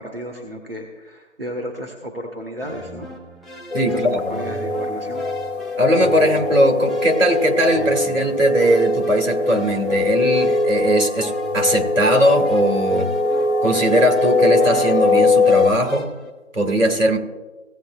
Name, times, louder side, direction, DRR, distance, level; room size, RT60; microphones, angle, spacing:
voice 1, 0.0-3.1 3.9-5.3, equal, 45° right, 1 dB, 1.3 m, -33 dB
sound 1, 2.6-16.3, right 1 dB, ahead, 0.7 m, -39 dB
sound 2, 3.7-15.7, left 3 dB, 60° left, 0.8 m, -21 dB
voice 2, 3.7-4.2 5.8-13.1 13.6-16.1 16.5-17.2, right 1 dB, 75° right, 2 dB, 2.3 m, -19 dB
17.0 x 8.7 x 2.5 m, 1.2 s
figure-of-eight pair, 180°, 38 cm